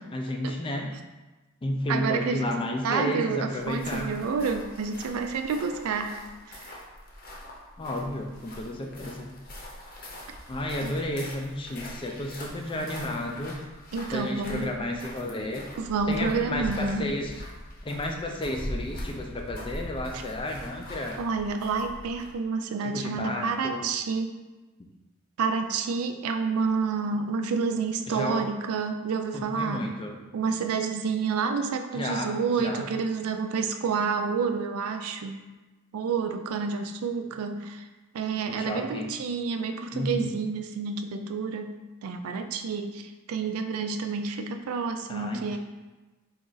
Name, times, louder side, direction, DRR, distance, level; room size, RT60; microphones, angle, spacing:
voice 1, 0.1-0.9 1.6-4.1 7.8-9.3 10.5-13.6 14.1-15.7 16.1-17.3 17.8-21.2 22.9-23.8 24.8-24.9 28.1-28.4 29.3-30.2 31.9-32.3 32.6-32.9 38.5-39.1 39.9-40.4 45.1-45.6, left 1 dB, 25° left, 2 dB, 0.4 m, -32 dB
voice 2, 1.9-2.5 2.8-6.2 6.5-6.7 10.8-10.9 13.9-14.7 15.8-17.1 21.2-24.4 25.4-30.0 30.3-35.4 35.9-37.8 38.1-45.6, right 5 dB, 75° right, 6 dB, 0.4 m, -29 dB
sound 1, 3.5-22.4, left 1 dB, 40° left, 0.7 m, -42 dB
4.1 x 2.5 x 3.8 m, 1.2 s
head